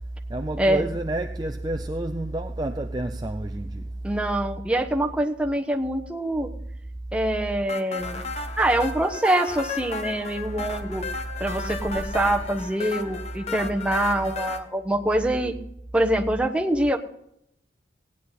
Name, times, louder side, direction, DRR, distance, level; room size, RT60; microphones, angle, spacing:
voice 1, 0.3-3.9, right 1 dB, 20° right, 0.5 m, -29 dB
voice 2, 4.0-6.5 7.1-8.2 8.6-11.0 11.4-15.5 15.9-17.0, right 1 dB, 5° right, 1.0 m, -24 dB
sound 1, 7.7-14.6, left 4 dB, 35° left, 1.1 m, -35 dB
17.0 x 9.7 x 4.1 m
head